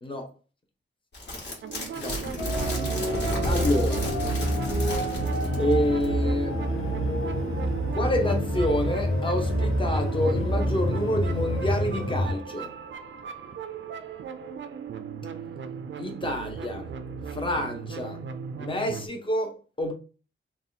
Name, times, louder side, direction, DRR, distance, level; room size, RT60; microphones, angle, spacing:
sound 1, 1.1-5.7 6.0-6.1, left 1 dB, 55° left, 1.7 m, -34 dB
sound 2, 1.6-19.1, right 7 dB, 65° right, 0.5 m, -37 dB
sound 3, 2.4-12.4, equal, 80° left, 1.0 m, -27 dB
voice 1, 3.4-4.2 5.6-6.6 7.9-12.7 16.0-16.9 17.3-18.2 18.6-19.9, left 1 dB, 25° left, 0.9 m, -28 dB
3.7 x 2.4 x 4.0 m
wide cardioid pair, 155°, 21 cm